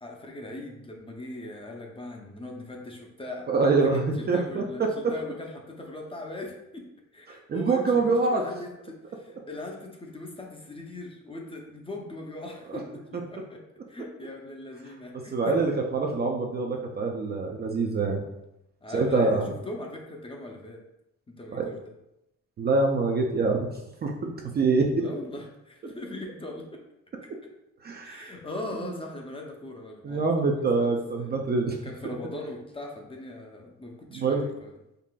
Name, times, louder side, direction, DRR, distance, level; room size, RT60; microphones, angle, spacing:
voice 1, 0.0-13.6 13.9-15.6 18.8-20.8 21.3-21.8 25.0-26.7 28.0-30.3 30.8-31.3 31.8-34.7, left 1 dB, 20° left, 1 dB, 0.5 m, -40 dB
voice 2, 3.5-4.6 5.0-5.1 7.3-8.4 15.3-18.2 18.9-19.5 21.5-21.7 22.6-23.7 24.0-25.1 27.8-28.3 28.8-28.9 30.0-31.8 34.1-34.5, right 3 dB, 35° right, 1 dB, 0.4 m, -25 dB
3.8 x 2.4 x 2.3 m, 0.88 s
cardioid pair, 90°, 30 cm